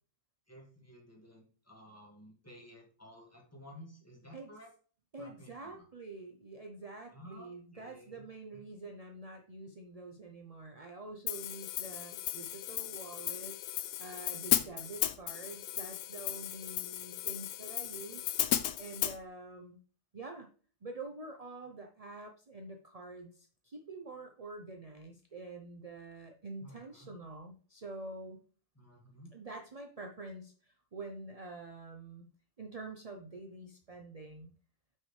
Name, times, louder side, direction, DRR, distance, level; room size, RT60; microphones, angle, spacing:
voice 1, 0.5-4.7 5.2-5.8 7.1-8.3 8.5-8.6 26.6-27.1 28.8-29.3, equal, 10° left, -2 dB, 2.0 m, -54 dB
voice 2, 5.1-13.6 14.0-19.8 20.1-20.5 20.8-28.4 29.3-32.3 32.6-34.5, right 2 dB, 40° right, 3 dB, 0.5 m, -47 dB
Hi-hat, 11.3-19.2, left 12 dB, 85° left, 1.2 m, -35 dB
7.8 x 6.1 x 3.3 m, 0.42 s
omnidirectional pair, 1.7 m